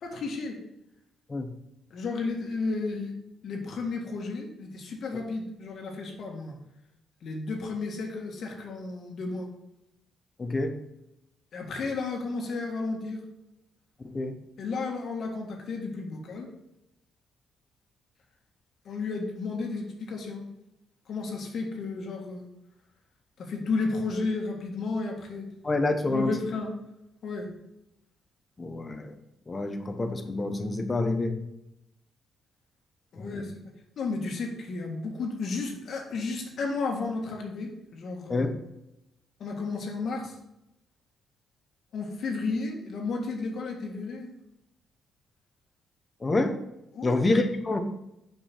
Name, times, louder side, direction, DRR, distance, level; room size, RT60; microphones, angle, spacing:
voice 1, 0.0-0.6 1.9-3.1 3.4-6.5 7.2-9.5 11.5-13.2 14.6-16.5 18.8-20.4 21.1-22.5 23.4-25.5 26.1-26.7 27.2-27.5 33.1-38.5 39.4-40.3 41.9-44.3 46.9-47.2, left 3 dB, 60° left, 2 dB, 1.7 m, -33 dB
voice 2, 10.4-10.7 14.0-14.3 25.6-26.3 28.6-29.1 29.5-31.4 33.2-33.5 38.3-38.5 46.2-46.6 47.0-47.8, left 2 dB, 25° left, 7 dB, 1.0 m, -27 dB
7.1 x 5.4 x 4.4 m, 0.87 s
cardioid pair, 90°, 0 cm